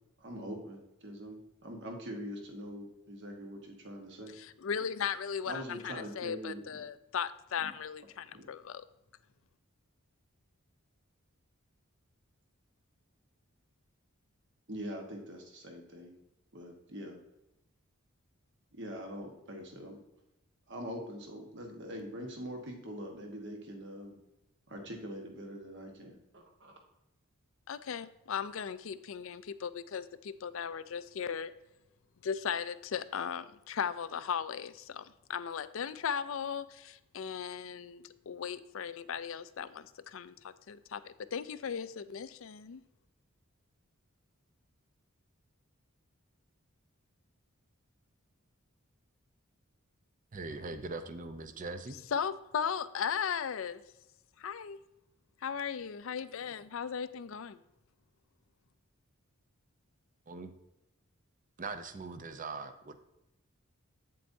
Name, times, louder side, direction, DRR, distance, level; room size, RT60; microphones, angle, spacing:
voice 1, 0.2-4.3 5.5-6.6 7.6-7.7 8.3-8.4 14.7-16.2 16.5-17.2 18.8-20.0 20.7-24.2 24.7-26.7, equal, 55° right, 1.3 m, -43 dB
voice 2, 4.3-8.9 27.7-31.5 32.2-42.8 52.1-53.8 54.4-54.8 55.4-57.6, left 7 dB, 60° left, 0.4 m, -37 dB
voice 3, 50.3-52.0 60.3-60.5 61.6-63.0, right 3 dB, 35° right, 0.6 m, -41 dB
8.5 x 7.6 x 2.7 m
head